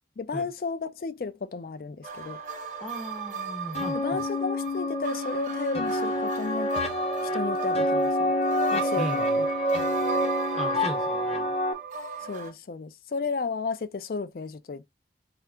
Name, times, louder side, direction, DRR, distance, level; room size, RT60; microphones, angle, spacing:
voice 1, 0.2-2.4 3.9-6.7 7.2-8.3 8.7-9.5 12.2-14.9, left 4 dB, 50° left, 0.4 m, -33 dB
sound 1, 2.0-12.5, right 7 dB, 45° right, 0.6 m, -36 dB
voice 2, 2.8-4.2 9.0-9.4 10.5-11.5, equal, ahead, 0.5 m, -37 dB
sound 2, 3.8-11.7, left 1 dB, 35° left, 0.7 m, -27 dB
3.5 x 2.8 x 3.4 m
head